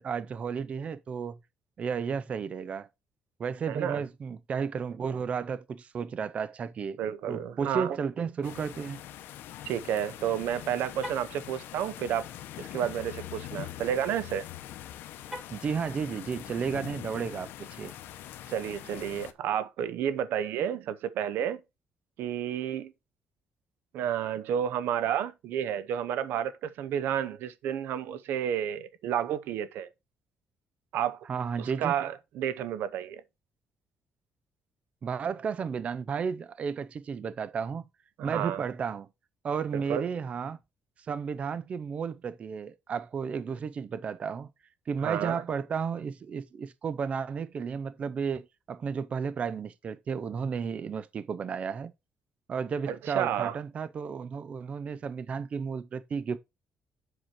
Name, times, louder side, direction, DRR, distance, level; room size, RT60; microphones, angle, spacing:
voice 1, 0.0-1.4 1.8-2.9 3.4-7.0 7.3-9.0 15.5-17.9 31.3-32.0 35.0-37.9 38.2-39.1 39.4-40.6 41.1-44.5 44.9-51.9 52.5-56.4, right 6 dB, 35° right, 0.5 m, -33 dB
voice 2, 3.7-4.0 7.0-8.0 9.6-12.3 12.6-14.5 18.5-21.6 22.2-22.9 23.9-29.9 30.9-31.2 31.6-33.2 38.2-38.6 39.7-40.1 45.0-45.4 52.9-53.6, right 9 dB, 80° right, 0.8 m, -31 dB
sound 1, 8.4-19.3, left 12 dB, 85° left, 0.9 m, -43 dB
Car, 10.9-11.4 15.2-15.7, equal, 15° right, 4.2 m, -41 dB
7.7 x 6.2 x 4.3 m
cardioid pair, 145°, 4 cm